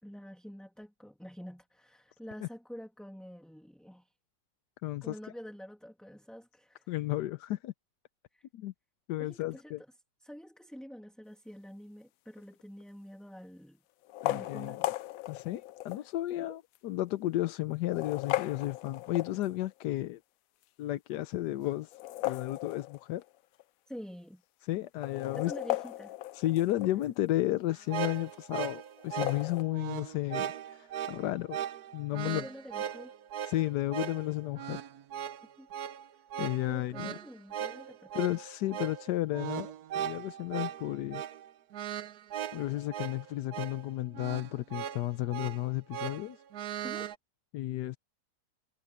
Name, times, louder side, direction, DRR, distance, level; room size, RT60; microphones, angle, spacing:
voice 1, 0.0-4.1 5.0-6.9 8.3-8.5 9.2-9.7 10.2-13.8 14.3-15.0 16.4-16.6 23.9-24.4 25.3-26.2 32.2-33.1 35.6-35.7 36.1-36.2 36.7-38.4 46.8-47.1, equal, ahead, 2.3 m, -47 dB
voice 2, 4.8-5.2 6.9-7.7 8.5-8.7 9.1-9.8 14.2-14.8 15.3-20.2 20.8-23.2 24.6-25.5 26.3-31.6 31.9-32.4 33.4-34.8 36.4-37.2 38.1-41.2 42.5-46.4 47.5-48.0, left 15 dB, 85° left, 1.2 m, -33 dB
sound 1, 12.4-12.8 14.0-16.1 16.7-16.8 17.7-19.7 21.8-23.3 23.6-23.7 23.9-24.0 24.8-27.1 29.0-29.6, left 15 dB, 70° left, 0.9 m, -36 dB
sound 2, 27.7-47.2, right 10 dB, 70° right, 1.3 m, -39 dB
omnidirectional pair, 1.8 m